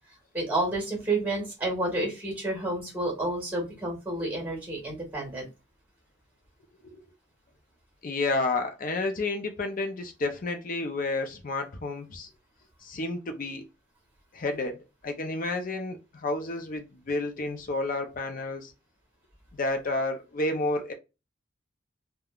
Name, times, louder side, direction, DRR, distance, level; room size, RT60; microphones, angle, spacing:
voice 1, 0.3-5.5, right 2 dB, 10° right, 1.5 m, -30 dB
voice 2, 8.0-12.3 12.8-13.7 14.3-18.7 19.5-20.9, left 2 dB, 45° left, 0.5 m, -31 dB
3.5 x 2.2 x 2.3 m
head